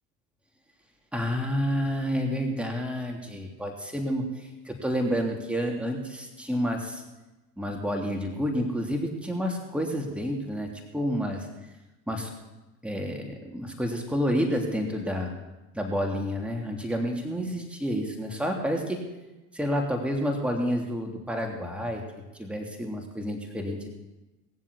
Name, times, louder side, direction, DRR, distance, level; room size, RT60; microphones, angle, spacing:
voice 1, 1.1-7.0 7.6-11.5 12.1-12.3 12.8-15.3 15.7-19.0 19.5-22.0 22.4-23.9, equal, 5° right, 1 dB, 3.2 m, -29 dB
20.0 x 7.5 x 8.5 m, 1.1 s
hypercardioid pair, 80°, 39 cm